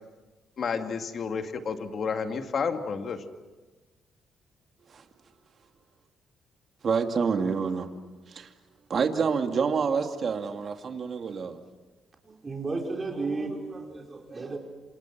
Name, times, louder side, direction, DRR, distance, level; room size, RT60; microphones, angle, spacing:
voice 1, 0.6-3.2, left 5 dB, 55° left, 6 dB, 2.3 m, -30 dB
voice 2, 6.8-7.9 8.3-8.5 8.9-11.6, right 5 dB, 50° right, 5 dB, 2.4 m, -27 dB
voice 3, 12.2-14.6, right 3 dB, 30° right, 1 dB, 4.5 m, -33 dB
27.5 x 27.5 x 6.1 m, 1.2 s
cardioid pair, 90°, 0 cm